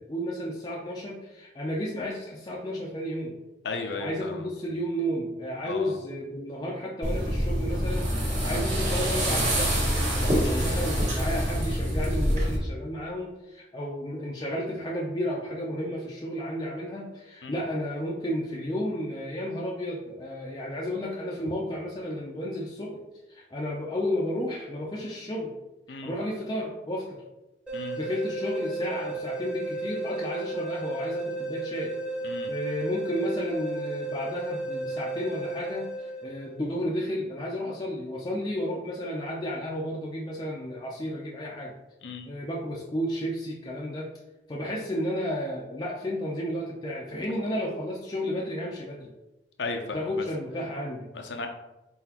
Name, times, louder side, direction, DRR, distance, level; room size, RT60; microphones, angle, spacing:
voice 1, 0.0-3.4 4.0-23.0 23.3-25.5 25.9-27.2 27.9-31.9 32.5-41.7 42.3-44.1 44.5-49.1 49.9-51.1, equal, 25° left, -4 dB, 0.5 m, -32 dB
voice 2, 3.6-4.4 5.6-5.9 10.4-10.9 17.4-17.5 25.9-26.1 27.7-28.0 32.2-32.5 42.0-42.3 49.6-50.2 51.1-51.5, left 3 dB, 90° left, 4 dB, 0.6 m, -35 dB
sound 1, 7.0-12.6, equal, 45° right, 1.5 m, -26 dB
sound 2, 27.7-36.6, right 2 dB, 5° right, 1.0 m, -34 dB
4.0 x 4.0 x 2.9 m, 0.99 s
head